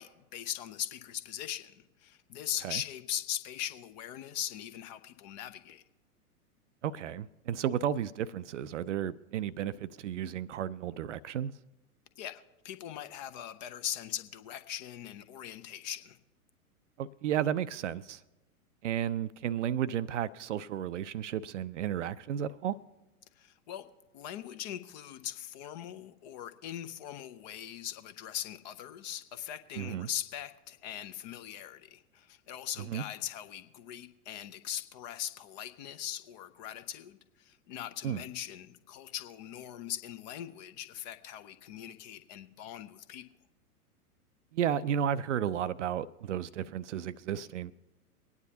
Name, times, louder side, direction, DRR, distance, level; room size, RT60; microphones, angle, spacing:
voice 1, 0.0-5.8 12.2-16.2 23.4-23.9 24.1-43.2, left 11 dB, 30° left, 0.6 m, -40 dB
voice 2, 6.8-11.5 17.0-18.2 18.8-22.8 29.8-30.1 32.8-33.0 38.0-38.2 44.5-47.7, right 9 dB, 55° right, 0.5 m, -33 dB
23.0 x 9.5 x 2.8 m
figure-of-eight pair, 100°, 45 cm